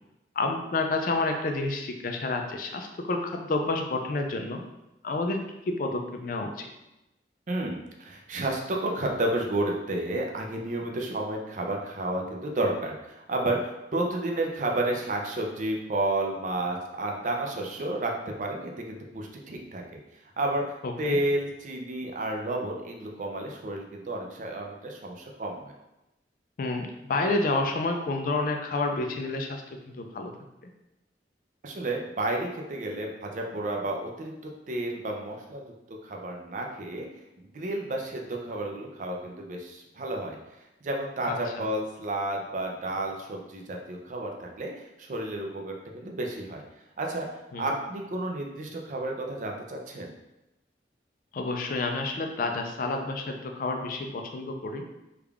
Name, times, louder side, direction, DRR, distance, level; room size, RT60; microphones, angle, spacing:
voice 1, 0.4-4.6 5.0-5.4 5.7-6.7 20.8-21.2 26.6-30.3 41.3-41.6 47.5-47.7 51.3-54.8, left 2 dB, 50° left, 4 dB, 0.4 m, -29 dB
voice 2, 7.5-18.1 18.4-20.0 20.4-25.7 31.6-37.1 37.4-40.4 40.8-46.6 47.0-50.1, right 1 dB, 45° right, 1 dB, 0.5 m, -31 dB
3.5 x 2.3 x 3.3 m, 0.94 s
head